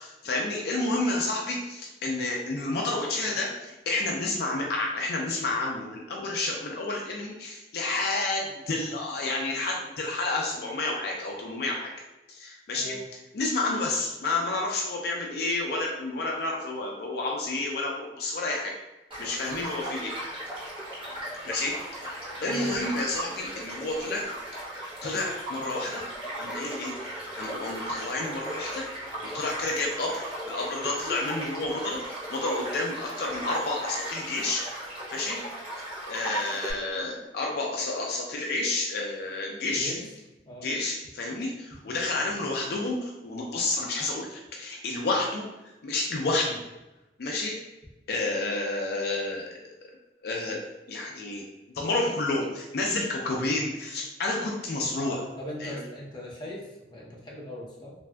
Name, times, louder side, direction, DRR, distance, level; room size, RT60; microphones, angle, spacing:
voice 1, 0.0-11.9 12.3-13.0 13.3-18.7 19.2-20.1 21.4-22.1 22.4-24.2 25.0-26.0 26.4-26.9 27.4-28.8 29.2-34.6 35.1-35.4 36.0-39.9 40.6-45.5 45.8-46.6 47.2-47.6 48.1-49.5 50.2-50.6 50.9-51.4 51.7-55.2 55.6-55.8, left 2 dB, 60° left, -1 dB, 0.4 m, -30 dB
voice 2, 12.8-13.1 22.4-22.7 39.7-40.1 40.5-40.7 42.2-42.5 55.4-57.9, left 1 dB, 25° left, -4 dB, 0.6 m, -40 dB
Child speech kid speaking / Stream / Car passing by, 19.1-36.7, right 1 dB, 30° right, 1.1 m, -37 dB
3.2 x 2.6 x 2.2 m, 1.0 s
head